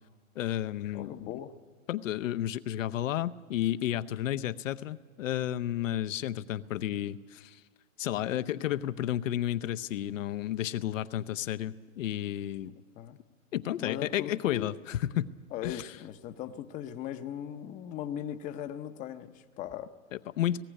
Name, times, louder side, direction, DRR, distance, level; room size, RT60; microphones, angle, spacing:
voice 1, 0.4-1.3 1.9-7.6 8.0-12.7 13.5-15.3 15.6-15.9 20.1-20.6, left 12 dB, 70° left, 12 dB, 0.8 m, -32 dB
voice 2, 0.9-1.6 13.0-13.2 13.8-14.8 15.5-19.9, left 10 dB, 20° left, 10 dB, 0.7 m, -39 dB
18.5 x 14.5 x 9.9 m, 1.5 s
hypercardioid pair, 145°, 39 cm